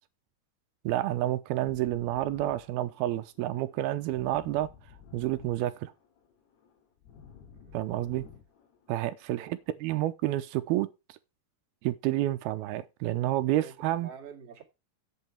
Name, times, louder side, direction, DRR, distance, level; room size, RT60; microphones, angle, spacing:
voice 1, 0.8-4.7 5.1-5.9 7.7-8.3 8.9-10.9 11.8-14.1, right 14 dB, 80° right, 2.5 m, -29 dB
sound 1, 1.6-9.7, left 7 dB, 75° left, 4.2 m, -53 dB
voice 2, 7.6-8.2 9.3-9.5 13.5-14.6, right 7 dB, 45° right, 2.7 m, -48 dB
10.0 x 8.4 x 4.5 m
omnidirectional pair, 4.7 m